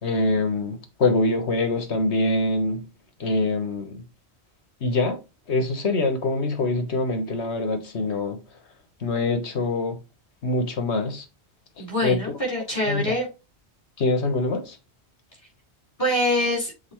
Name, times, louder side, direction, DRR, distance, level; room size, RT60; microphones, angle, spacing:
voice 1, 0.0-2.8 3.2-4.0 4.8-5.2 5.5-8.4 9.0-10.0 10.4-11.2 12.0-12.2 12.9-13.2 14.0-14.8, left 2 dB, 85° left, 1.6 m, -24 dB
voice 2, 11.8-13.3 16.0-16.7, left 1 dB, 30° left, 4.1 m, -24 dB
6.7 x 4.6 x 3.1 m
omnidirectional pair, 1.1 m